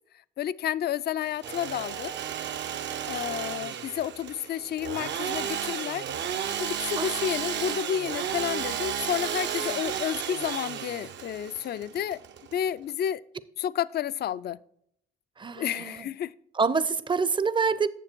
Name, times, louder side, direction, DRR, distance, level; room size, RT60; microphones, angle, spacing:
voice 1, 0.4-2.1 3.1-6.1 6.6-12.2 12.5-13.2 13.6-14.6 15.6-16.3, left 10 dB, 55° left, 0.4 m, -31 dB
Engine / Sawing, 1.2-12.9, right 8 dB, 65° right, 0.7 m, -33 dB
voice 2, 15.4-16.1 16.5-17.9, right 5 dB, 25° right, 0.6 m, -26 dB
9.1 x 7.0 x 4.4 m
cardioid pair, 90°, 20 cm